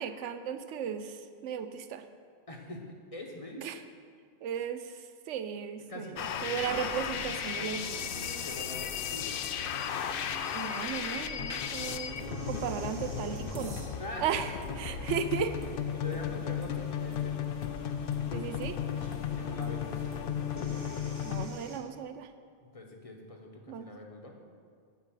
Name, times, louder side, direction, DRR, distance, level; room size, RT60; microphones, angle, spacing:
voice 1, 0.0-2.0 3.6-3.8 4.4-4.9 5.3-8.1 10.5-12.2 12.4-13.8 14.2-15.5 18.3-18.8 21.2-22.3 23.7-23.9, right 7 dB, 80° right, 9 dB, 0.9 m, -35 dB
voice 2, 2.5-2.8 3.1-3.7 5.9-6.7 8.4-9.3 14.0-14.3 15.9-17.5 19.3-19.9 22.6-24.3, left 2 dB, 30° left, 1 dB, 1.0 m, -44 dB
sound 1, 6.2-21.5, left 8 dB, 60° left, 0.6 m, -35 dB
sound 2, 6.7-21.8, right 1 dB, 55° right, 1.4 m, -48 dB
8.9 x 5.5 x 7.4 m, 2.1 s
omnidirectional pair, 1.2 m